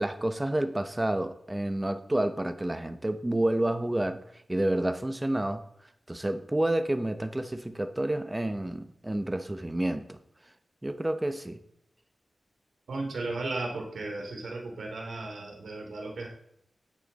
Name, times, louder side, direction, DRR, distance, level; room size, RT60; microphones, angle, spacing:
voice 1, 0.0-4.2 4.5-5.7 6.1-10.2 10.8-11.6, right 1 dB, 15° right, 10 dB, 1.0 m, -29 dB
voice 2, 12.9-16.3, right 2 dB, 85° right, 1 dB, 3.2 m, -35 dB
15.5 x 9.1 x 4.2 m, 0.75 s
wide cardioid pair, 90°, 0 cm